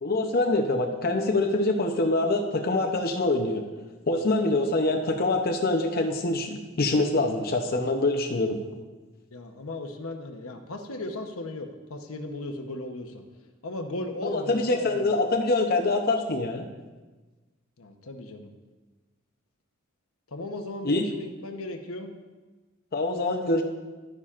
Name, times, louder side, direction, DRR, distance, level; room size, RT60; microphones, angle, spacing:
voice 1, 0.0-3.6 4.1-8.6 14.2-16.6 20.8-21.0 22.9-23.6, left 2 dB, 45° left, 2 dB, 0.7 m, -25 dB
voice 2, 9.3-13.2 13.6-15.2 17.8-18.5 20.3-22.1, left 2 dB, 85° left, 5 dB, 0.9 m, -36 dB
11.5 x 9.9 x 2.5 m, 1.2 s
head